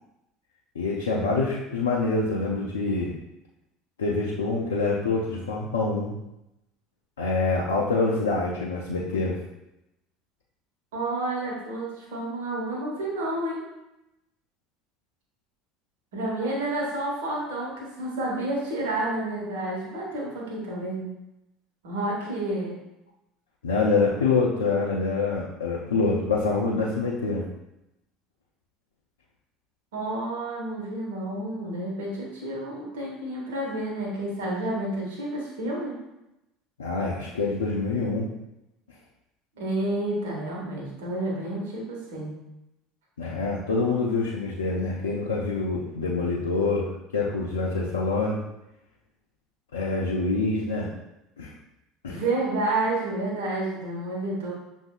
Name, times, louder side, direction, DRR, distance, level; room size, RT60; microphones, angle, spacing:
voice 1, 0.8-3.1 4.0-6.1 7.2-9.4 23.6-27.4 36.8-38.3 43.2-48.4 49.7-50.9 51.4-51.5 52.0-52.2, left 3 dB, 75° left, -4 dB, 0.5 m, -26 dB
voice 2, 10.9-13.6 16.1-21.1 21.8-22.7 29.9-36.0 39.6-42.3 44.7-44.8 52.1-54.5, right 2 dB, 65° right, -4 dB, 1.3 m, -30 dB
6.2 x 2.7 x 2.4 m, 0.91 s
figure-of-eight pair, 65°, 0 cm